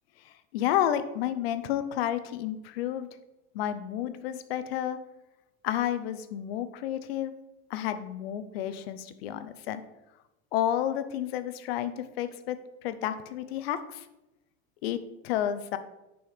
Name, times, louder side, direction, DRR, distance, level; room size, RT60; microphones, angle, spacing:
voice 1, 0.5-3.1 3.5-5.0 5.6-7.3 7.7-9.8 10.5-12.6 12.8-14.0 14.8-15.0 15.2-15.8, left 11 dB, 75° left, 12 dB, 0.8 m, -30 dB
7.0 x 5.5 x 5.1 m, 0.95 s
supercardioid pair, 150°, 30 cm